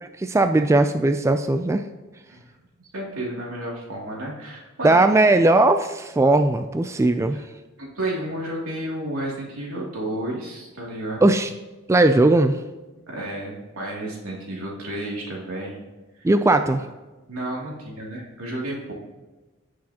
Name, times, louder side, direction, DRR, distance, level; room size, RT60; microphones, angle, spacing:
voice 1, 0.0-1.8 4.8-7.4 11.2-11.5 11.9-12.6 16.2-16.8, right 2 dB, 15° right, 8 dB, 0.3 m, -18 dB
voice 2, 2.9-5.1 7.3-7.4 7.8-11.3 13.1-15.8 16.2-16.3 17.3-18.9, right 1 dB, 90° right, -3 dB, 2.6 m, -31 dB
15.5 x 6.3 x 2.9 m, 1.2 s
head